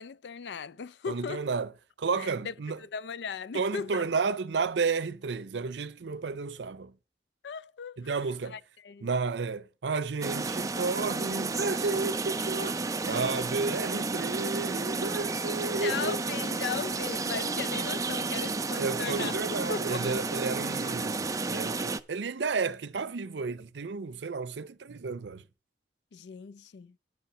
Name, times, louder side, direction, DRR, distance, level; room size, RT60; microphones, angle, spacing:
voice 1, 0.0-1.5 2.2-2.5 2.8-4.0 7.4-8.1 8.5-9.1 13.1-13.2 15.8-20.0 26.1-26.9, left 6 dB, 70° left, 0.4 m, -37 dB
voice 2, 1.1-1.7 2.0-2.8 3.5-6.9 8.0-8.6 9.0-16.2 18.8-25.4, right 4 dB, 75° right, 0.6 m, -32 dB
sound 1, 10.2-22.0, right 3 dB, 20° right, 0.4 m, -32 dB
9.4 x 5.6 x 6.0 m
head